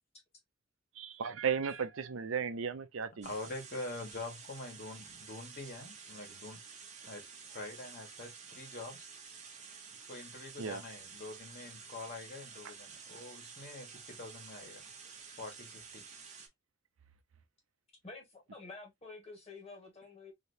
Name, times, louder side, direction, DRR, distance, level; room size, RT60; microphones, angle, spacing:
voice 1, 1.0-3.3 10.6-10.8, right 6 dB, 85° right, 0.6 m, -35 dB
voice 2, 3.2-6.6 7.1-7.2 7.5-9.1 10.1-14.8 15.4-16.0, left 2 dB, 45° left, 1.4 m, -45 dB
sound 1, 3.2-16.5, right 5 dB, 35° right, 0.8 m, -51 dB
voice 3, 18.0-20.3, left 3 dB, 30° left, 1.6 m, -50 dB
3.2 x 2.9 x 2.6 m
head